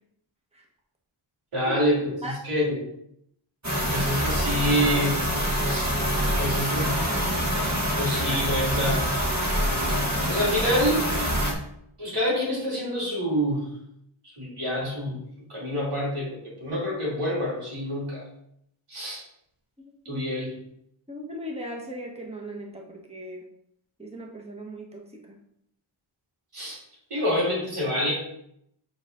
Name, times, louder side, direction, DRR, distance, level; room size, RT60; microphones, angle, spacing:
voice 1, 1.5-2.0 2.4-2.8 3.9-5.2 5.7-5.9 6.4-6.9 8.0-9.0 10.3-11.1 12.0-13.6 14.4-15.2 15.5-18.2 18.9-19.2 20.0-20.5 26.5-26.8 27.1-28.1, equal, 85° right, -5 dB, 2.8 m, -26 dB
sound 1, 3.6-11.5, equal, 35° right, 1.8 m, -25 dB
voice 2, 19.8-20.3 21.1-23.4 24.0-25.4, equal, 10° right, -1 dB, 1.5 m, -38 dB
8.0 x 4.2 x 3.8 m, 0.74 s
cardioid pair, 45°, 50 cm